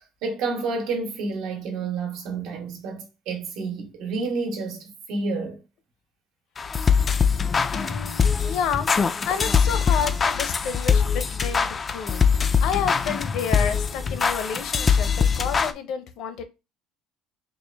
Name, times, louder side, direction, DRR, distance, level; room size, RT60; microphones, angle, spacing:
voice 1, 0.0-5.6, right 4 dB, 70° right, 1.4 m, -30 dB
sound 1, 6.6-15.7, left 6 dB, 25° left, 0.3 m, -22 dB
voice 2, 7.7-12.2 12.6-16.4, left 7 dB, 60° left, 0.7 m, -30 dB
4.4 x 2.5 x 3.4 m
cardioid pair, 150°, 0 cm